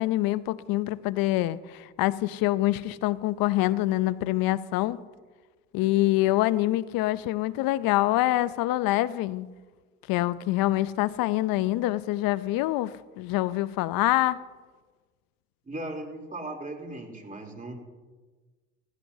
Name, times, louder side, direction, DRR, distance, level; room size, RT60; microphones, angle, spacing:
voice 1, 0.0-5.0 5.7-9.5 10.1-14.4, left 16 dB, 70° left, 17 dB, 0.6 m, -25 dB
voice 2, 15.6-17.7, right 1 dB, 20° right, 1 dB, 3.3 m, -37 dB
16.5 x 14.5 x 2.8 m, 1.3 s
supercardioid pair, 70°, 36 cm